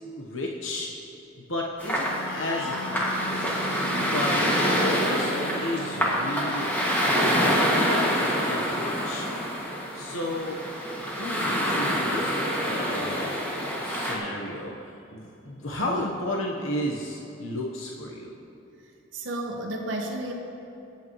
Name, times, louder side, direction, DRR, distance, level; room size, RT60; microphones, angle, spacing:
voice 1, 0.2-0.9 1.5-3.6 4.1-7.4 7.9-9.3 9.9-10.6 11.0-13.3 13.8-18.3, left 1 dB, 90° left, -2 dB, 1.1 m, -33 dB
sound 1, 1.8-14.1, equal, 10° left, 1.9 m, -26 dB
Wind instrument woodwind instrument, 2.0-6.9, equal, 65° left, 1.4 m, -38 dB
voice 2, 19.1-20.3, right 1 dB, 75° right, 0 dB, 1.3 m, -32 dB
24.0 x 8.8 x 3.1 m, 2.9 s
head